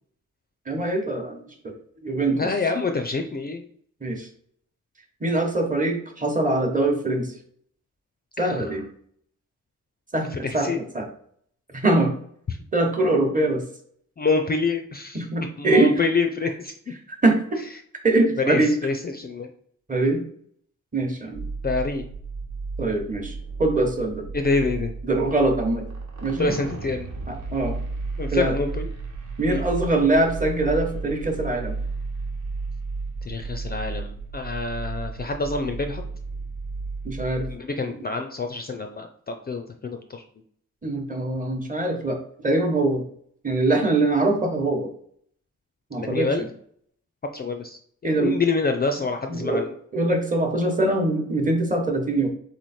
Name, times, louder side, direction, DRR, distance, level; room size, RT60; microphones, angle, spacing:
voice 1, 0.7-1.7 2.0-2.4 4.0-4.3 5.2-7.3 8.4-8.8 10.1-11.0 11.7-12.1 12.7-13.6 15.1-15.9 17.2-17.6 18.0-18.7 19.9-20.2 20.9-21.4 22.8-23.3 23.6-24.2 25.1-25.9 26.2-26.6 27.3-27.8 28.3-28.6 29.4-31.8 37.0-37.5 40.8-42.2 42.4-43.0 43.4-44.9 45.9-46.3 48.0-48.4 49.3-49.6 49.9-52.3, right 2 dB, 25° right, 3 dB, 1.0 m, -23 dB
voice 2, 2.1-3.6 8.4-8.7 10.3-10.8 12.5-12.6 14.2-15.2 15.6-16.9 18.4-19.5 21.6-22.0 24.3-24.9 26.4-27.1 28.2-28.9 29.5-29.6 33.3-36.0 37.4-40.2 46.0-46.5 47.3-49.7, left 3 dB, 30° left, 5 dB, 0.4 m, -27 dB
sound 1, 21.3-37.5, right 3 dB, 70° right, 1.2 m, -33 dB
4.1 x 3.2 x 4.1 m, 0.62 s
wide cardioid pair, 130°, 31 cm